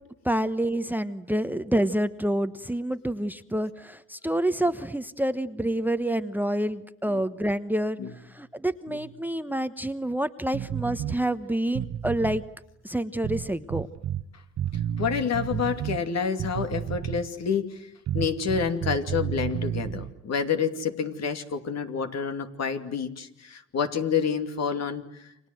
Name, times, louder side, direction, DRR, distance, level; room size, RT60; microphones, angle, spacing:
voice 1, 0.2-8.0 8.3-12.4 12.8-13.9, right 1 dB, 5° right, 12 dB, 1.1 m, -28 dB
sound 1, 10.5-11.2 11.7-12.5 13.2-14.2 14.6-16.0 16.4-17.4 18.1-20.1, right 10 dB, 65° right, 1.3 m, -31 dB
voice 2, 15.0-25.2, left 6 dB, 60° left, 7 dB, 2.7 m, -28 dB
30.0 x 25.5 x 7.9 m, 0.83 s
cardioid pair, 90°, 30 cm